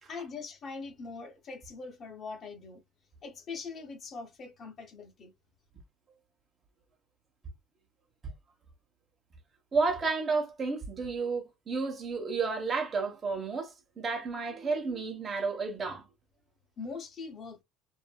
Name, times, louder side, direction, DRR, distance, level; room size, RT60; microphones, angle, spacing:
voice 1, 0.1-2.8 3.2-5.3 16.8-17.6, left 4 dB, 40° left, 1.0 m, -42 dB
voice 2, 9.7-16.0, right 4 dB, 30° right, 1.1 m, -31 dB
2.6 x 2.6 x 2.2 m
supercardioid pair, 105°, 0 cm